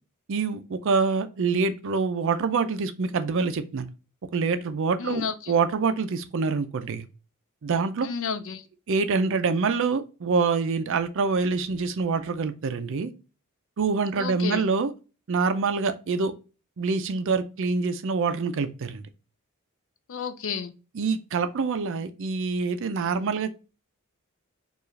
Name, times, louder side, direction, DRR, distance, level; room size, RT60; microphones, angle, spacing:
voice 1, 0.3-3.9 4.3-7.1 7.6-8.1 8.9-13.1 13.8-14.9 15.3-16.3 16.8-19.0 20.9-23.5, right 4 dB, 60° right, 0.5 m, -26 dB
voice 2, 5.0-5.5 8.0-8.6 14.2-14.6 20.1-20.7, left 5 dB, 60° left, 0.5 m, -31 dB
4.6 x 2.4 x 3.1 m
head